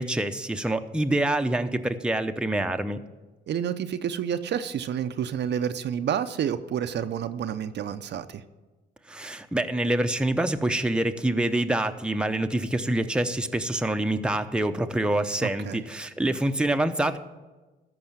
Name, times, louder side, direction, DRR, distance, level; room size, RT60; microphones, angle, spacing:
voice 1, 0.0-3.0 9.1-17.2, right 1 dB, 5° right, 7 dB, 0.7 m, -26 dB
voice 2, 3.5-8.4 15.4-15.8, right 8 dB, 60° right, 10 dB, 0.6 m, -29 dB
13.5 x 5.5 x 7.3 m, 1.2 s
cardioid pair, 90°, 20 cm